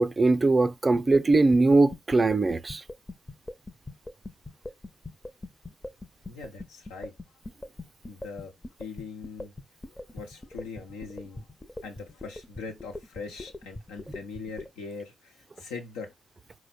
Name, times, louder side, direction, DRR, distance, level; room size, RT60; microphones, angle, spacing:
voice 1, 0.0-2.8, right 3 dB, 30° right, 0.5 m, -21 dB
sound 1, 0.9-14.7, left 2 dB, 25° left, 0.8 m, -40 dB
voice 2, 6.3-7.2 8.0-8.5 8.8-9.5 9.9-11.5 11.8-16.1, left 4 dB, 80° left, 0.9 m, -41 dB
4.6 x 2.2 x 4.2 m
hypercardioid pair, 40°, 0 cm